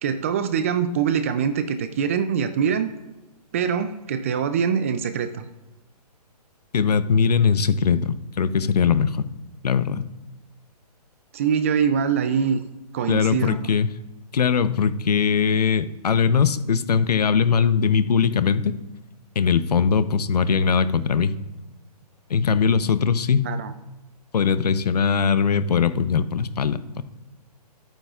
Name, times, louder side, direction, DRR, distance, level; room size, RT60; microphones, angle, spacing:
voice 1, 0.0-2.9 3.5-5.4 11.3-12.6 12.9-13.6 23.4-23.7, right 7 dB, 20° right, 11 dB, 0.4 m, -23 dB
voice 2, 6.7-9.2 9.6-10.1 13.1-13.9 14.3-18.7 19.3-21.3 22.3-23.5 24.3-27.0, left 6 dB, 70° left, 13 dB, 0.8 m, -20 dB
24.0 x 9.0 x 2.4 m, 1.1 s
hypercardioid pair, 155°, 21 cm